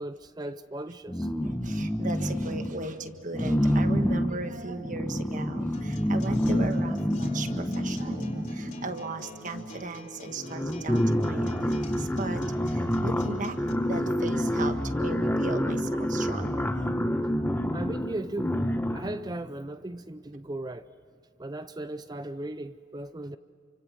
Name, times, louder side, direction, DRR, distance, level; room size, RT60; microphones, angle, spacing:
voice 1, 0.0-1.3 17.7-18.5 18.9-20.8 21.4-23.4, right 1 dB, 20° right, 12 dB, 0.5 m, -37 dB
sound 1, 1.1-2.9 3.3-9.0 9.9-10.0 10.3-19.2, equal, 10° left, 1.0 m, -28 dB
voice 2, 1.4-13.6 13.9-16.7, right 2 dB, 40° right, 7 dB, 1.6 m, -37 dB
Acoustic guitar, 5.7-13.7, left 1 dB, 40° left, 3.4 m, -46 dB
28.5 x 25.5 x 6.4 m, 2.5 s
head